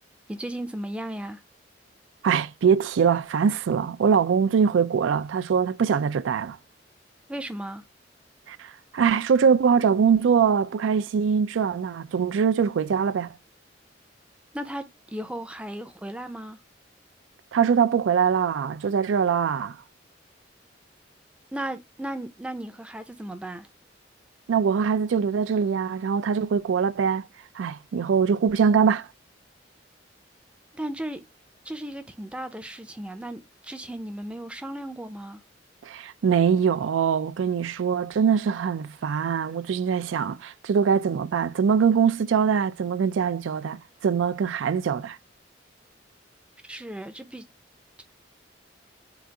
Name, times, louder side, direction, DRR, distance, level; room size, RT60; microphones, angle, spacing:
voice 1, 0.3-1.4 7.3-7.8 14.5-16.6 21.5-23.7 30.7-31.2 31.6-35.4 46.6-47.4, right 1 dB, 5° right, 0.4 m, -35 dB
voice 2, 2.2-6.6 8.5-13.4 17.5-19.8 24.5-27.2 27.5-29.1 35.8-45.2, right 6 dB, 90° right, 0.4 m, -23 dB
3.9 x 2.4 x 4.5 m
head